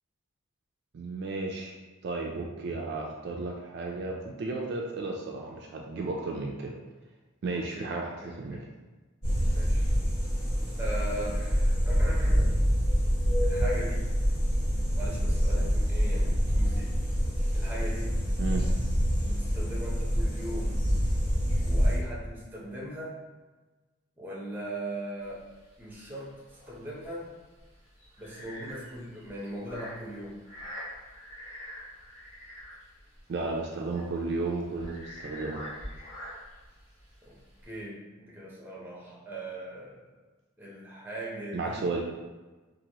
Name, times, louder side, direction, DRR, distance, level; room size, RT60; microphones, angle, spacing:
voice 1, 0.9-1.8 2.0-6.7 7.4-8.6 18.4-18.7 33.3-35.6 41.5-42.0, right 3 dB, 55° right, 0 dB, 0.3 m, -33 dB
voice 2, 7.5-7.9 8.2-8.7 9.5-9.8 10.8-12.6 13.4-14.1 15.0-16.9 17.5-18.2 19.2-20.9 21.6-23.1 24.2-25.4 25.8-27.3 28.2-30.4 37.2-37.4 37.6-40.2 40.6-41.9, right 1 dB, 10° right, -5 dB, 0.6 m, -39 dB
sound 1, 9.2-22.0, equal, 65° left, 1.5 m, -26 dB
sound 2, 25.2-37.8, equal, 30° left, 1.0 m, -45 dB
2.9 x 2.5 x 2.8 m, 1.2 s
head